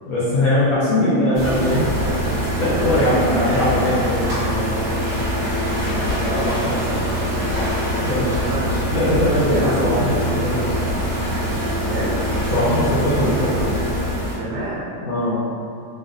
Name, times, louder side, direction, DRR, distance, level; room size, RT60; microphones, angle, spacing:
voice 1, 0.0-1.9 2.6-4.7 8.0-8.4 8.9-10.7 12.5-13.7 15.0-15.4, left 1 dB, 70° left, -9 dB, 0.9 m, -20 dB
sound 1, 1.3-14.4, equal, 50° right, 0.8 m, -23 dB
voice 2, 2.0-2.4 2.9-3.9 5.7-7.7 8.4-8.8 9.3-9.9 11.8-12.2 14.4-14.9, right 1 dB, 70° right, -6 dB, 1.1 m, -30 dB
3.1 x 2.5 x 2.5 m, 2.3 s
omnidirectional pair, 2.1 m